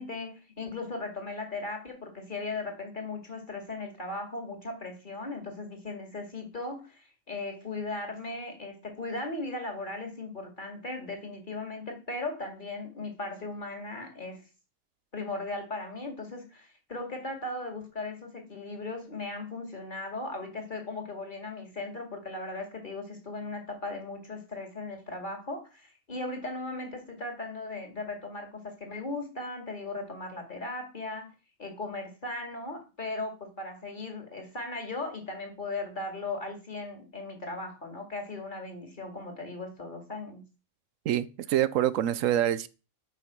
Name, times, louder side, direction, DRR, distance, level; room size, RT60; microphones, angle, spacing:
voice 1, 0.0-14.4 15.1-31.3 31.6-40.5, left 2 dB, 40° left, 2.5 m, -37 dB
voice 2, 41.1-42.7, right 11 dB, 90° right, 1.1 m, -26 dB
8.2 x 5.6 x 5.9 m
omnidirectional pair, 1.3 m